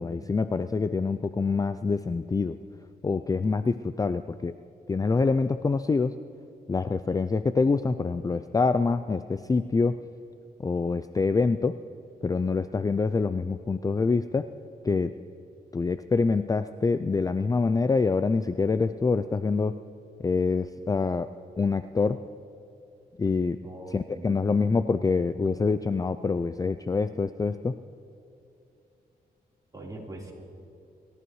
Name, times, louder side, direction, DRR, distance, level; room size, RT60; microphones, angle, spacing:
voice 1, 0.0-2.6 3.0-4.5 4.9-6.1 6.7-10.0 10.6-11.8 12.2-14.5 14.8-15.1 15.7-19.8 20.2-21.3 21.6-22.3 23.2-23.6 23.9-27.7, left 4 dB, 20° left, 12 dB, 0.4 m, -25 dB
voice 2, 23.6-24.4 29.7-30.3, right 1 dB, 25° right, -3 dB, 3.9 m, -42 dB
27.0 x 14.0 x 3.2 m, 2.7 s
cardioid pair, 80°, 16 cm